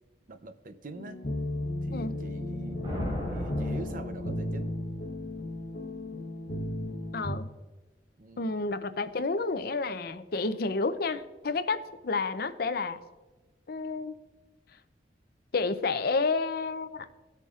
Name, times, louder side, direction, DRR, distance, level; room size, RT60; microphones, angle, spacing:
voice 1, 0.3-1.2 1.8-2.9 3.3-4.7 8.2-8.6, right 2 dB, 50° right, 10 dB, 0.6 m, -44 dB
sound 1, 1.0-7.4, left 1 dB, 85° left, 1.2 m, -34 dB
Thunder, 2.5-4.8, equal, 30° right, 2.2 m, -37 dB
voice 2, 7.1-7.5 8.4-13.0 13.7-14.1 15.5-17.1, left 3 dB, 60° left, 11 dB, 0.6 m, -30 dB
18.5 x 6.7 x 2.5 m, 1.2 s
head